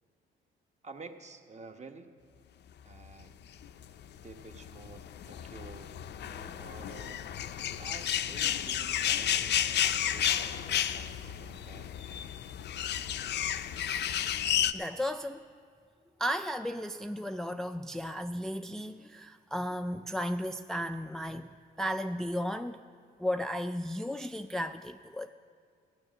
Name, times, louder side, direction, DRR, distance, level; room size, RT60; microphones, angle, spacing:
voice 1, 0.8-2.1 2.8-3.3 4.2-7.2 7.8-12.3, right 3 dB, 35° right, 1.1 m, -50 dB
sound 1, 3.6-14.7, left 10 dB, 60° left, 0.5 m, -32 dB
voice 2, 14.7-15.4 16.2-22.8 23.2-25.3, equal, ahead, 0.3 m, -34 dB
14.0 x 9.5 x 6.2 m
cardioid pair, 90°, 20 cm